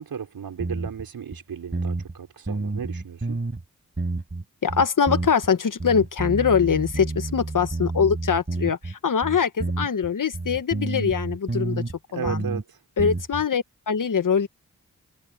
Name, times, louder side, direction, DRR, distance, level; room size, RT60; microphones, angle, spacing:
voice 1, 0.0-3.4 12.1-12.8, right 7 dB, 80° right, 5.2 m, -34 dB
sound 1, 0.6-1.1 1.3-1.4 1.7-2.2 2.5-3.6 4.0-4.4 4.7-5.5 5.8-8.9 9.2-12.0 12.2-12.6 13.0-13.4, right 2 dB, 35° right, 5.8 m, -29 dB
voice 2, 4.6-11.8 12.1-12.4 13.0-14.5, left 6 dB, 60° left, 1.5 m, -23 dB
cardioid pair, 40°, 35 cm